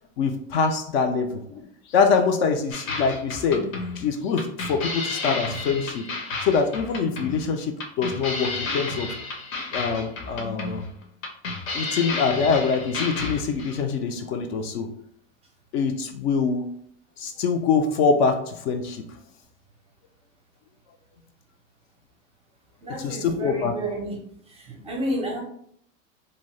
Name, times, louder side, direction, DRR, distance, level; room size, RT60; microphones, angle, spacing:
voice 1, 0.2-3.7 4.0-6.1 6.4-9.1 9.7-10.8 11.7-14.9 15.7-16.7 17.2-19.0 23.0-23.8, left 5 dB, 50° left, 5 dB, 0.4 m, -24 dB
sound 1, 2.7-13.8, left 3 dB, 85° left, 0.9 m, -32 dB
voice 2, 22.8-24.2 24.5-25.4, right 1 dB, 15° right, -1 dB, 0.5 m, -30 dB
2.7 x 2.1 x 3.1 m, 0.67 s
hypercardioid pair, 125°, 40 cm